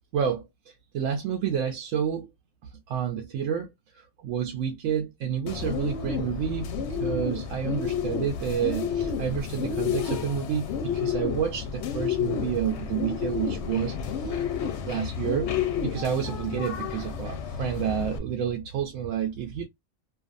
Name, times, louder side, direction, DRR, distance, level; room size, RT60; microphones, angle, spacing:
voice 1, 0.1-2.3 2.9-14.0 14.3-14.4 14.9-15.5 15.8-19.6, right 8 dB, 80° right, 0.9 m, -29 dB
Bird, 5.5-18.2, left 7 dB, 70° left, 0.8 m, -30 dB
2.5 x 2.4 x 2.4 m
omnidirectional pair, 1.3 m